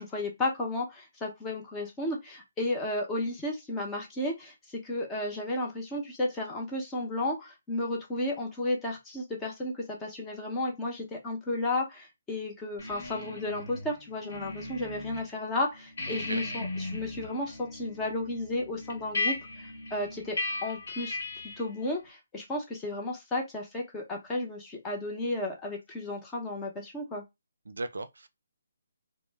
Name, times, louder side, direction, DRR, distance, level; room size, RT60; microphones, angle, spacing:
voice 1, 0.0-4.5 4.8-21.2 21.6-27.2, left 2 dB, 10° left, 0.7 m, -33 dB
sound 1, 12.8-15.3 15.6-21.7, left 2 dB, 60° left, 1.1 m, -37 dB
voice 2, 16.1-16.4 27.7-28.3, right 2 dB, 85° right, 0.4 m, -37 dB
2.1 x 2.0 x 3.3 m
hypercardioid pair, 160°, 0 cm